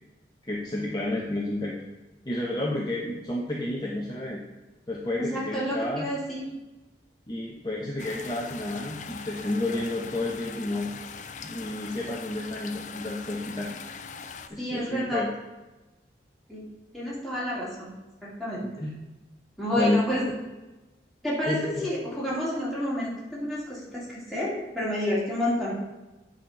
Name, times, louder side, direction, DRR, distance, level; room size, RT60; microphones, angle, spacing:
voice 1, 0.4-1.7 2.3-4.4 4.9-6.1 7.3-10.9 11.4-13.7 14.5-15.3 18.8-18.9 19.8-20.0 21.5-21.9, left 1 dB, 20° left, -2 dB, 0.8 m, -30 dB
voice 2, 5.2-6.5 14.6-15.2 16.5-16.6 16.9-18.0 18.4-18.6 19.6-20.3 21.2-25.7, left 1 dB, ahead, -8 dB, 2.7 m, -29 dB
sound 1, 8.0-14.5, left 5 dB, 40° left, 0.5 m, -41 dB
8.9 x 4.3 x 5.9 m, 1.1 s
head